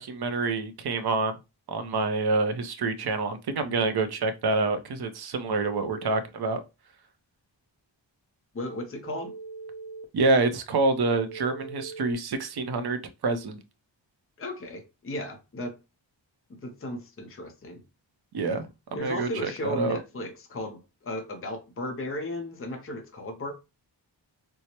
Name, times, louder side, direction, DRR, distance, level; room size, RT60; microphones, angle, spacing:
voice 1, 0.0-1.3 1.7-6.6 10.1-13.6 18.3-20.0, right 3 dB, 55° right, 0.6 m, -27 dB
Telephone, 5.6-6.1 9.0-10.0 11.3-12.1, right 4 dB, 15° right, 0.7 m, -41 dB
voice 2, 8.5-9.3 14.4-15.8 16.5-17.8 18.9-23.5, left 1 dB, 30° left, 0.6 m, -35 dB
4.5 x 2.0 x 2.8 m
wide cardioid pair, 135°, 45 cm